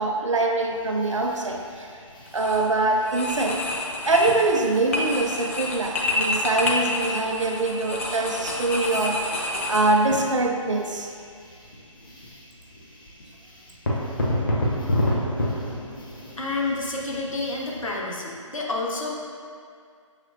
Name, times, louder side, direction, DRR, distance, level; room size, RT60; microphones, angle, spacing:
voice 1, 0.0-1.9 2.3-3.6 4.0-9.2 9.7-11.1, right 2 dB, 65° right, 2 dB, 0.5 m, -23 dB
sound 1, 0.7-18.0, left 1 dB, 40° left, 0.7 m, -33 dB
sound 2, 2.3-2.7 3.0-10.3, left 2 dB, 25° left, 0.4 m, -29 dB
voice 2, 16.4-19.1, left 2 dB, 75° left, -3 dB, 0.8 m, -29 dB
6.6 x 3.0 x 2.6 m, 2.2 s
figure-of-eight pair, 145°, 17 cm